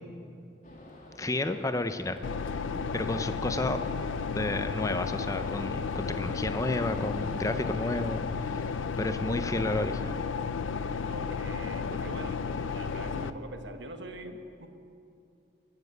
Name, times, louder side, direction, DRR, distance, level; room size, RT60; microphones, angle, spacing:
sound 1, 0.6-8.2, left 1 dB, 40° left, 2.2 m, -49 dB
voice 1, 1.2-2.2 2.9-3.8 4.3-10.2, left 2 dB, 15° left, 9 dB, 0.5 m, -31 dB
sound 2, 2.2-13.3, left 5 dB, 90° left, 0.5 m, -33 dB
voice 2, 11.1-14.7, right 1 dB, 65° right, 7 dB, 1.2 m, -43 dB
21.0 x 7.2 x 8.0 m, 2.6 s
head